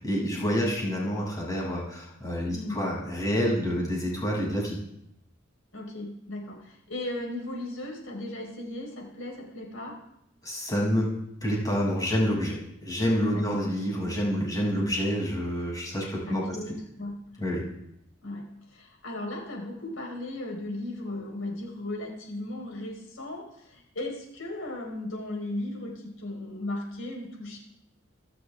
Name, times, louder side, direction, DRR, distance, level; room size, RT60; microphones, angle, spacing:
voice 1, 0.0-4.8 10.4-11.1 11.4-16.6 17.4-17.6, equal, 20° left, -3 dB, 7.2 m, -28 dB
voice 2, 2.5-2.8 5.7-10.0 13.3-13.6 14.7-14.9 16.1-17.2 18.2-27.6, left 1 dB, 85° left, 1 dB, 4.7 m, -36 dB
28.0 x 13.5 x 3.7 m, 0.78 s
head